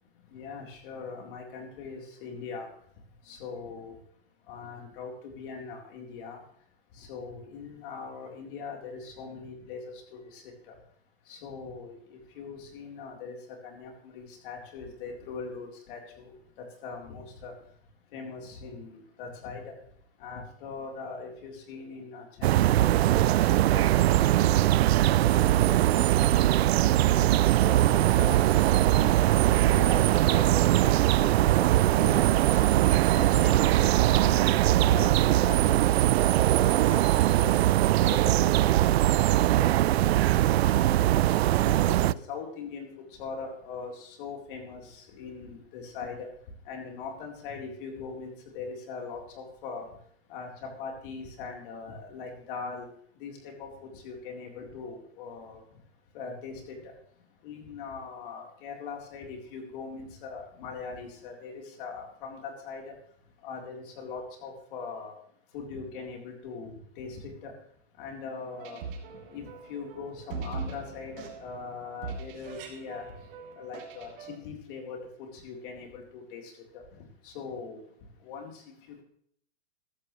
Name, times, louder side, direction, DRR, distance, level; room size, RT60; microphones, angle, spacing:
voice 1, 0.3-2.7 3.3-4.0 4.5-6.4 7.0-10.7 11.3-13.4 13.6-16.3 16.6-17.5 18.1-19.7 20.2-24.6 25.2-26.8 27.0-32.7 33.1-34.5 34.9-38.5 38.8-40.1 40.6-40.9 41.6-42.9 43.2-46.3 46.7-49.9 50.3-52.9 53.2-55.6 56.1-56.7 57.4-62.9 63.4-65.1 65.5-67.5 68.0-68.8 69.3-73.1 73.6-76.4 76.7-76.8 77.2-77.8 78.2-78.6, left 5 dB, 50° left, 1 dB, 4.0 m, -41 dB
Sound of spring in the forest, 22.4-42.1, right 14 dB, 70° right, 0.5 m, -21 dB
sound 1, 68.3-74.4, right 5 dB, 55° right, 3.5 m, -41 dB
14.5 x 14.0 x 3.3 m, 0.62 s
hypercardioid pair, 140°, 33 cm